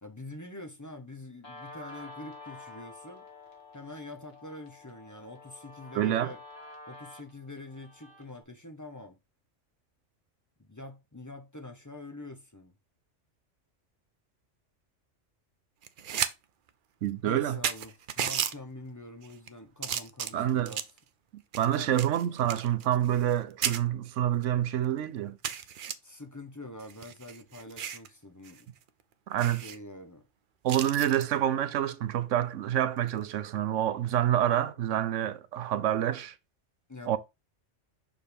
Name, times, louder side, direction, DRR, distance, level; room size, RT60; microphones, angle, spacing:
voice 1, 0.0-3.2 3.7-6.4 6.9-9.2 10.6-12.7 17.2-20.9 21.7-22.0 26.0-28.7 29.5-30.2 36.9-37.2, left 2 dB, 15° left, 0.8 m, -45 dB
Guitar, 1.4-8.4, left 2 dB, 55° left, 1.8 m, -49 dB
voice 2, 6.0-6.3 17.0-17.6 20.3-20.7 21.6-25.4 29.3-29.6 30.6-36.3 37.1-37.2, right 11 dB, 85° right, 1.0 m, -27 dB
sound 1, 15.8-16.3 16.7-16.8 17.3-17.4 17.6-18.5 19.2-19.5 19.8-21.0 21.5-23.4 23.6-23.8 24.4-24.5 24.8-24.9 25.4-25.9 26.8-28.1 28.4-28.6 28.9-29.0 29.4-29.8 30.7-31.3 33.0-33.2, right 8 dB, 55° right, 0.6 m, -34 dB
6.1 x 4.8 x 3.5 m
omnidirectional pair, 1.2 m